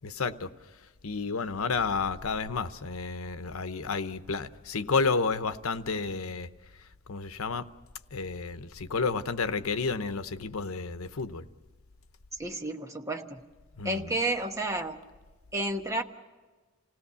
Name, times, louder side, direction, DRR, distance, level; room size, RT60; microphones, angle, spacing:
voice 1, 0.0-0.5 1.0-6.5 7.1-7.6 8.1-11.4 13.8-14.2, left 4 dB, 90° left, 11 dB, 0.8 m, -31 dB
voice 2, 12.4-13.4 13.8-15.0 15.5-16.0, right 2 dB, 15° right, 4 dB, 1.1 m, -31 dB
27.5 x 17.5 x 6.9 m, 1.3 s
head